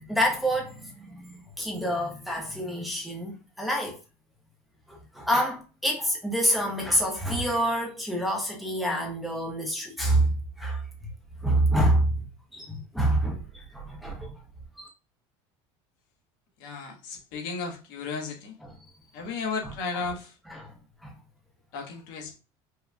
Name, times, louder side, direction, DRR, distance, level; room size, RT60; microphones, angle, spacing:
voice 1, 0.1-4.0 4.9-10.3 10.6-10.8 11.4-12.1 12.5-14.3 14.8-14.9 18.6-18.7 20.5-20.7 21.0-21.1, right 1 dB, ahead, 0.9 m, -27 dB
voice 2, 16.6-18.5 19.1-20.3 21.7-22.4, left 4 dB, 75° left, 1.5 m, -34 dB
5.2 x 3.1 x 2.3 m
cardioid pair, 170°, 12 cm